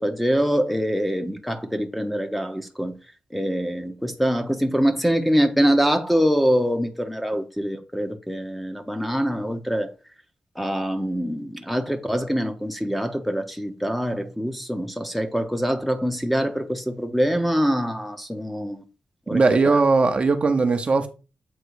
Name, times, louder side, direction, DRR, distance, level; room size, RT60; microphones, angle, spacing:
voice 1, 0.0-2.9 3.3-9.9 10.6-18.8 19.3-19.4, equal, ahead, 0.8 m, -24 dB
voice 2, 19.3-21.1, right 4 dB, 40° right, 0.7 m, -19 dB
7.8 x 3.0 x 4.7 m
wide cardioid pair, 130°, 3 cm